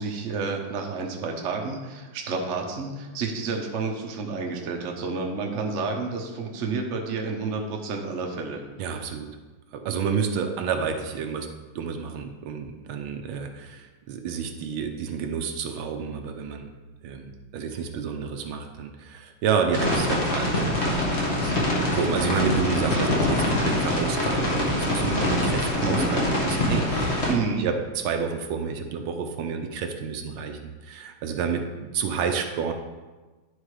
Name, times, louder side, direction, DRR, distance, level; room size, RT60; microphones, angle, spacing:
voice 1, 0.0-8.6 25.8-26.1 27.3-27.6, right 4 dB, 50° right, 2 dB, 1.0 m, -30 dB
voice 2, 8.8-9.3 9.7-11.5 11.7-16.7 17.0-27.3 27.6-32.7, right 6 dB, 75° right, 5 dB, 1.5 m, -30 dB
sound 1, 19.7-27.3, left 1 dB, 35° left, 1.7 m, -24 dB
10.0 x 4.4 x 4.9 m, 1.2 s
omnidirectional pair, 2.3 m